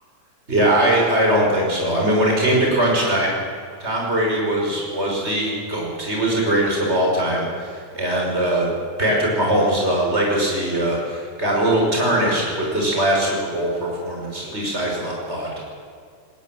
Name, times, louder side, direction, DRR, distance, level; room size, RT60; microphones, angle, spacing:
voice 1, 0.5-3.4 3.8-8.7 9.0-15.5, right 1 dB, 20° right, -1 dB, 5.6 m, -21 dB
19.5 x 19.0 x 7.6 m, 2.2 s
omnidirectional pair, 3.3 m